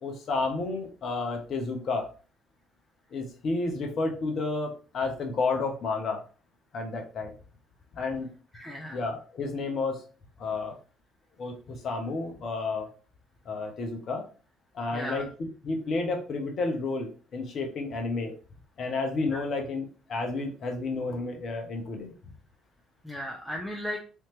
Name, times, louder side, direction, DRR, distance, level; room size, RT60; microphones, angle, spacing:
voice 1, 0.0-2.1 3.1-6.2 6.7-7.3 7.9-8.3 8.9-10.0 10.4-10.8 11.4-12.9 13.5-14.3 14.7-18.3 18.8-22.1, left 3 dB, 50° left, 3 dB, 0.8 m, -31 dB
voice 2, 8.5-9.0 14.9-15.3 19.3-19.4 23.0-24.0, equal, 5° left, -2 dB, 0.8 m, -36 dB
3.4 x 2.8 x 3.0 m, 0.37 s
figure-of-eight pair, 50°, 0 cm